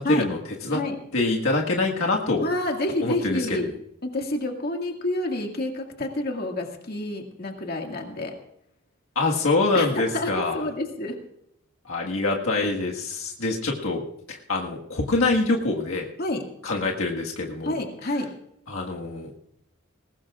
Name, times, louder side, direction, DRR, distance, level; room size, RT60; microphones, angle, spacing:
voice 1, 0.0-0.8 1.1-2.5 3.0-3.6 9.1-10.7 11.8-14.0 14.3-16.1 16.6-17.8 18.7-19.3, left 3 dB, 70° left, -1 dB, 1.7 m, -25 dB
voice 2, 2.4-3.7 4.0-8.3 9.7-11.2 16.2-16.4 17.6-18.3, left 1 dB, 45° left, 2 dB, 2.0 m, -28 dB
20.5 x 18.5 x 2.5 m, 0.76 s
head